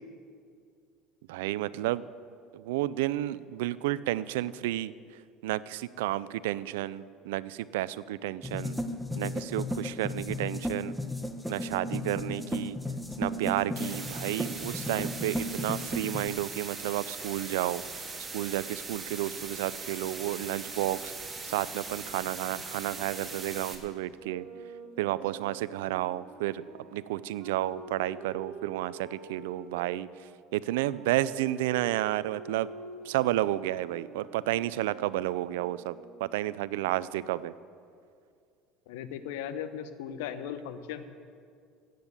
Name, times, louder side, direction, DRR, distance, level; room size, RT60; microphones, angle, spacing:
voice 1, 1.3-2.0 2.5-4.9 5.4-8.8 9.2-10.9 11.5-12.8 13.2-17.8 18.3-21.1 21.4-24.5 25.0-26.6 26.9-30.1 30.5-32.7 33.0-37.5, right 15 dB, 80° right, 18 dB, 0.4 m, -31 dB
sound 1, 8.4-16.3, left 1 dB, ahead, 1.3 m, -34 dB
sound 2, 13.8-23.8, right 3 dB, 20° right, 2.9 m, -40 dB
sound 3, 24.1-29.9 30.7-36.3, right 5 dB, 60° right, 2.5 m, -47 dB
voice 2, 38.9-41.0, left 9 dB, 75° left, 10 dB, 1.0 m, -37 dB
15.0 x 9.3 x 8.1 m, 2.3 s
hypercardioid pair, 80°, 0 cm